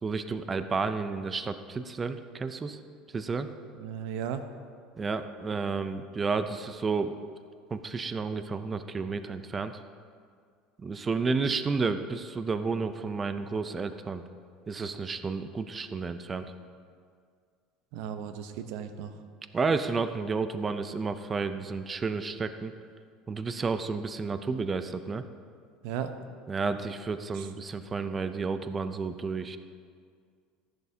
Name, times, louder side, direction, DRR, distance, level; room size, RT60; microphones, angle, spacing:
voice 1, 0.0-2.8 3.1-3.5 5.0-7.2 7.7-9.8 10.8-14.2 14.7-16.5 19.5-22.7 23.3-25.2 26.5-29.6, right 4 dB, 20° right, 10 dB, 0.5 m, -31 dB
voice 2, 3.8-4.5 17.9-19.1 25.8-26.2 27.3-27.5, right 8 dB, 70° right, 9 dB, 0.8 m, -35 dB
14.0 x 11.0 x 2.8 m, 2.1 s
supercardioid pair, 130°, 0 cm